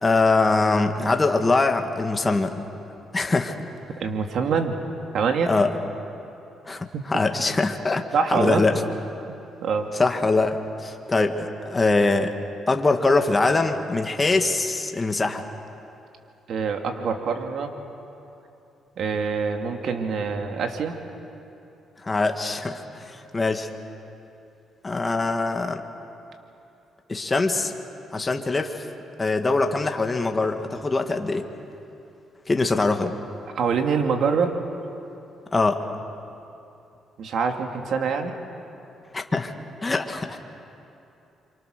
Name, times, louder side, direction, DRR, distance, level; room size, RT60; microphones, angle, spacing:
voice 1, 0.0-2.5 3.1-3.5 5.5-5.7 6.7-8.8 10.0-12.4 12.7-15.4 22.0-23.7 24.8-25.8 27.1-27.7 28.1-28.8 29.2-31.5 32.5-33.1 35.5-35.8 39.1-39.5 39.8-40.4, left 3 dB, 25° left, 5 dB, 1.6 m, -23 dB
voice 2, 4.0-4.7 5.1-5.5 6.9-7.0 8.1-8.6 9.3-9.4 9.6-9.9 16.5-17.7 19.0-20.9 33.5-34.6 37.2-38.3, right 5 dB, 65° right, 4 dB, 2.4 m, -25 dB
28.0 x 25.0 x 6.6 m, 2.8 s
cardioid pair, 90°, 0 cm